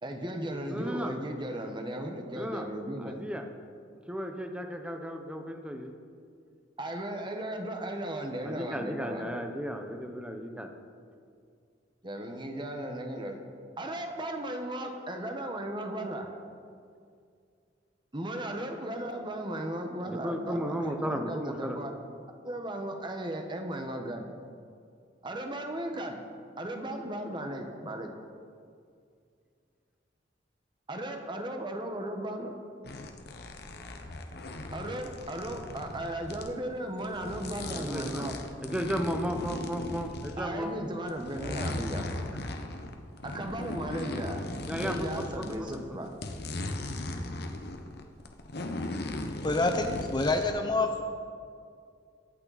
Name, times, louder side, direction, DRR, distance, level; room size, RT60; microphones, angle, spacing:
voice 1, 0.0-3.2 6.8-9.4 10.6-10.7 12.0-13.4 13.8-16.3 18.1-21.9 22.4-24.3 25.2-26.2 26.6-28.1 30.9-32.6 34.7-38.4 40.4-42.3 43.2-44.5 44.8-46.1 46.7-46.8, right 1 dB, 25° right, 4 dB, 1.2 m, -36 dB
voice 2, 0.7-1.1 2.3-2.7 3.0-3.4 4.1-5.9 8.4-10.7 20.1-21.8 37.7-38.3 38.6-40.7 44.7-46.1, equal, 5° right, 4 dB, 1.0 m, -34 dB
sound 1, 32.8-36.5 37.0-40.6 41.1-45.8 46.0-50.4, left 2 dB, 60° left, 1.1 m, -38 dB
voice 3, 49.4-51.0, left 2 dB, 25° left, 5 dB, 0.7 m, -27 dB
22.5 x 8.8 x 4.1 m, 2.3 s
head